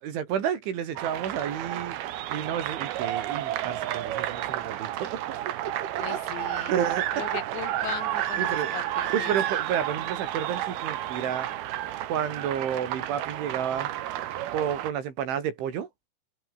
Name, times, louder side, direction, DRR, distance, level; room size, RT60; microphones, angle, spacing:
voice 1, 0.0-1.9 2.3-5.2 5.7-6.2 6.7-7.2 8.4-8.7 9.1-11.5 12.1-13.9 14.5-15.9, right 9 dB, 85° right, 5.6 m, -31 dB
sound 1, 1.0-14.9, right 13 dB, 65° right, 3.0 m, -31 dB
voice 2, 6.0-6.7 7.1-9.3, left 14 dB, 75° left, 3.5 m, -38 dB
omnidirectional pair, 5.4 m